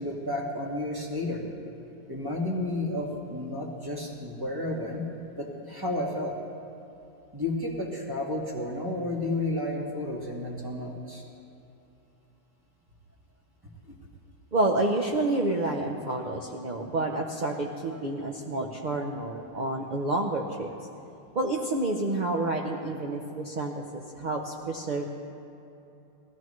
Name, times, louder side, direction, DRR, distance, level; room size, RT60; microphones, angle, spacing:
voice 1, 0.0-1.4 2.1-5.0 5.3-6.3 7.3-11.2 13.9-14.0, left 1 dB, 15° right, -2 dB, 1.4 m, -32 dB
voice 2, 14.5-20.7 21.3-25.0, right 2 dB, 45° right, 0 dB, 0.6 m, -29 dB
18.0 x 14.0 x 3.2 m, 2.8 s
omnidirectional pair, 1.8 m